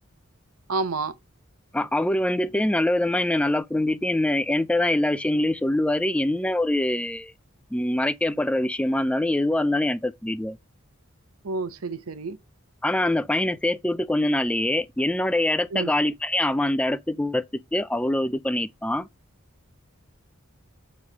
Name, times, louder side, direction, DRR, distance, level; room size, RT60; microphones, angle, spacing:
voice 1, 0.7-1.1 11.4-12.4 15.7-15.9, right 3 dB, 85° right, 0.8 m, -29 dB
voice 2, 1.7-7.3 7.7-10.6 12.8-17.4 17.7-19.1, left 1 dB, 5° left, 0.3 m, -24 dB
7.0 x 3.2 x 5.4 m
head